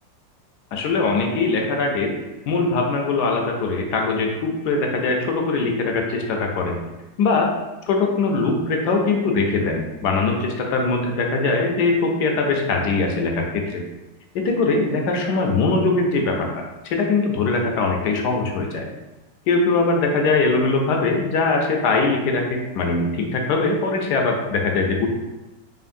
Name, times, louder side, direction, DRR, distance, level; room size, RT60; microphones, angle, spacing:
voice 1, 0.7-2.1 2.5-6.8 7.2-7.5 7.9-13.5 13.7-13.8 14.3-18.9 19.5-25.1, left 3 dB, 70° left, 2 dB, 1.1 m, -21 dB
5.1 x 2.5 x 2.6 m, 1.1 s
omnidirectional pair, 2.0 m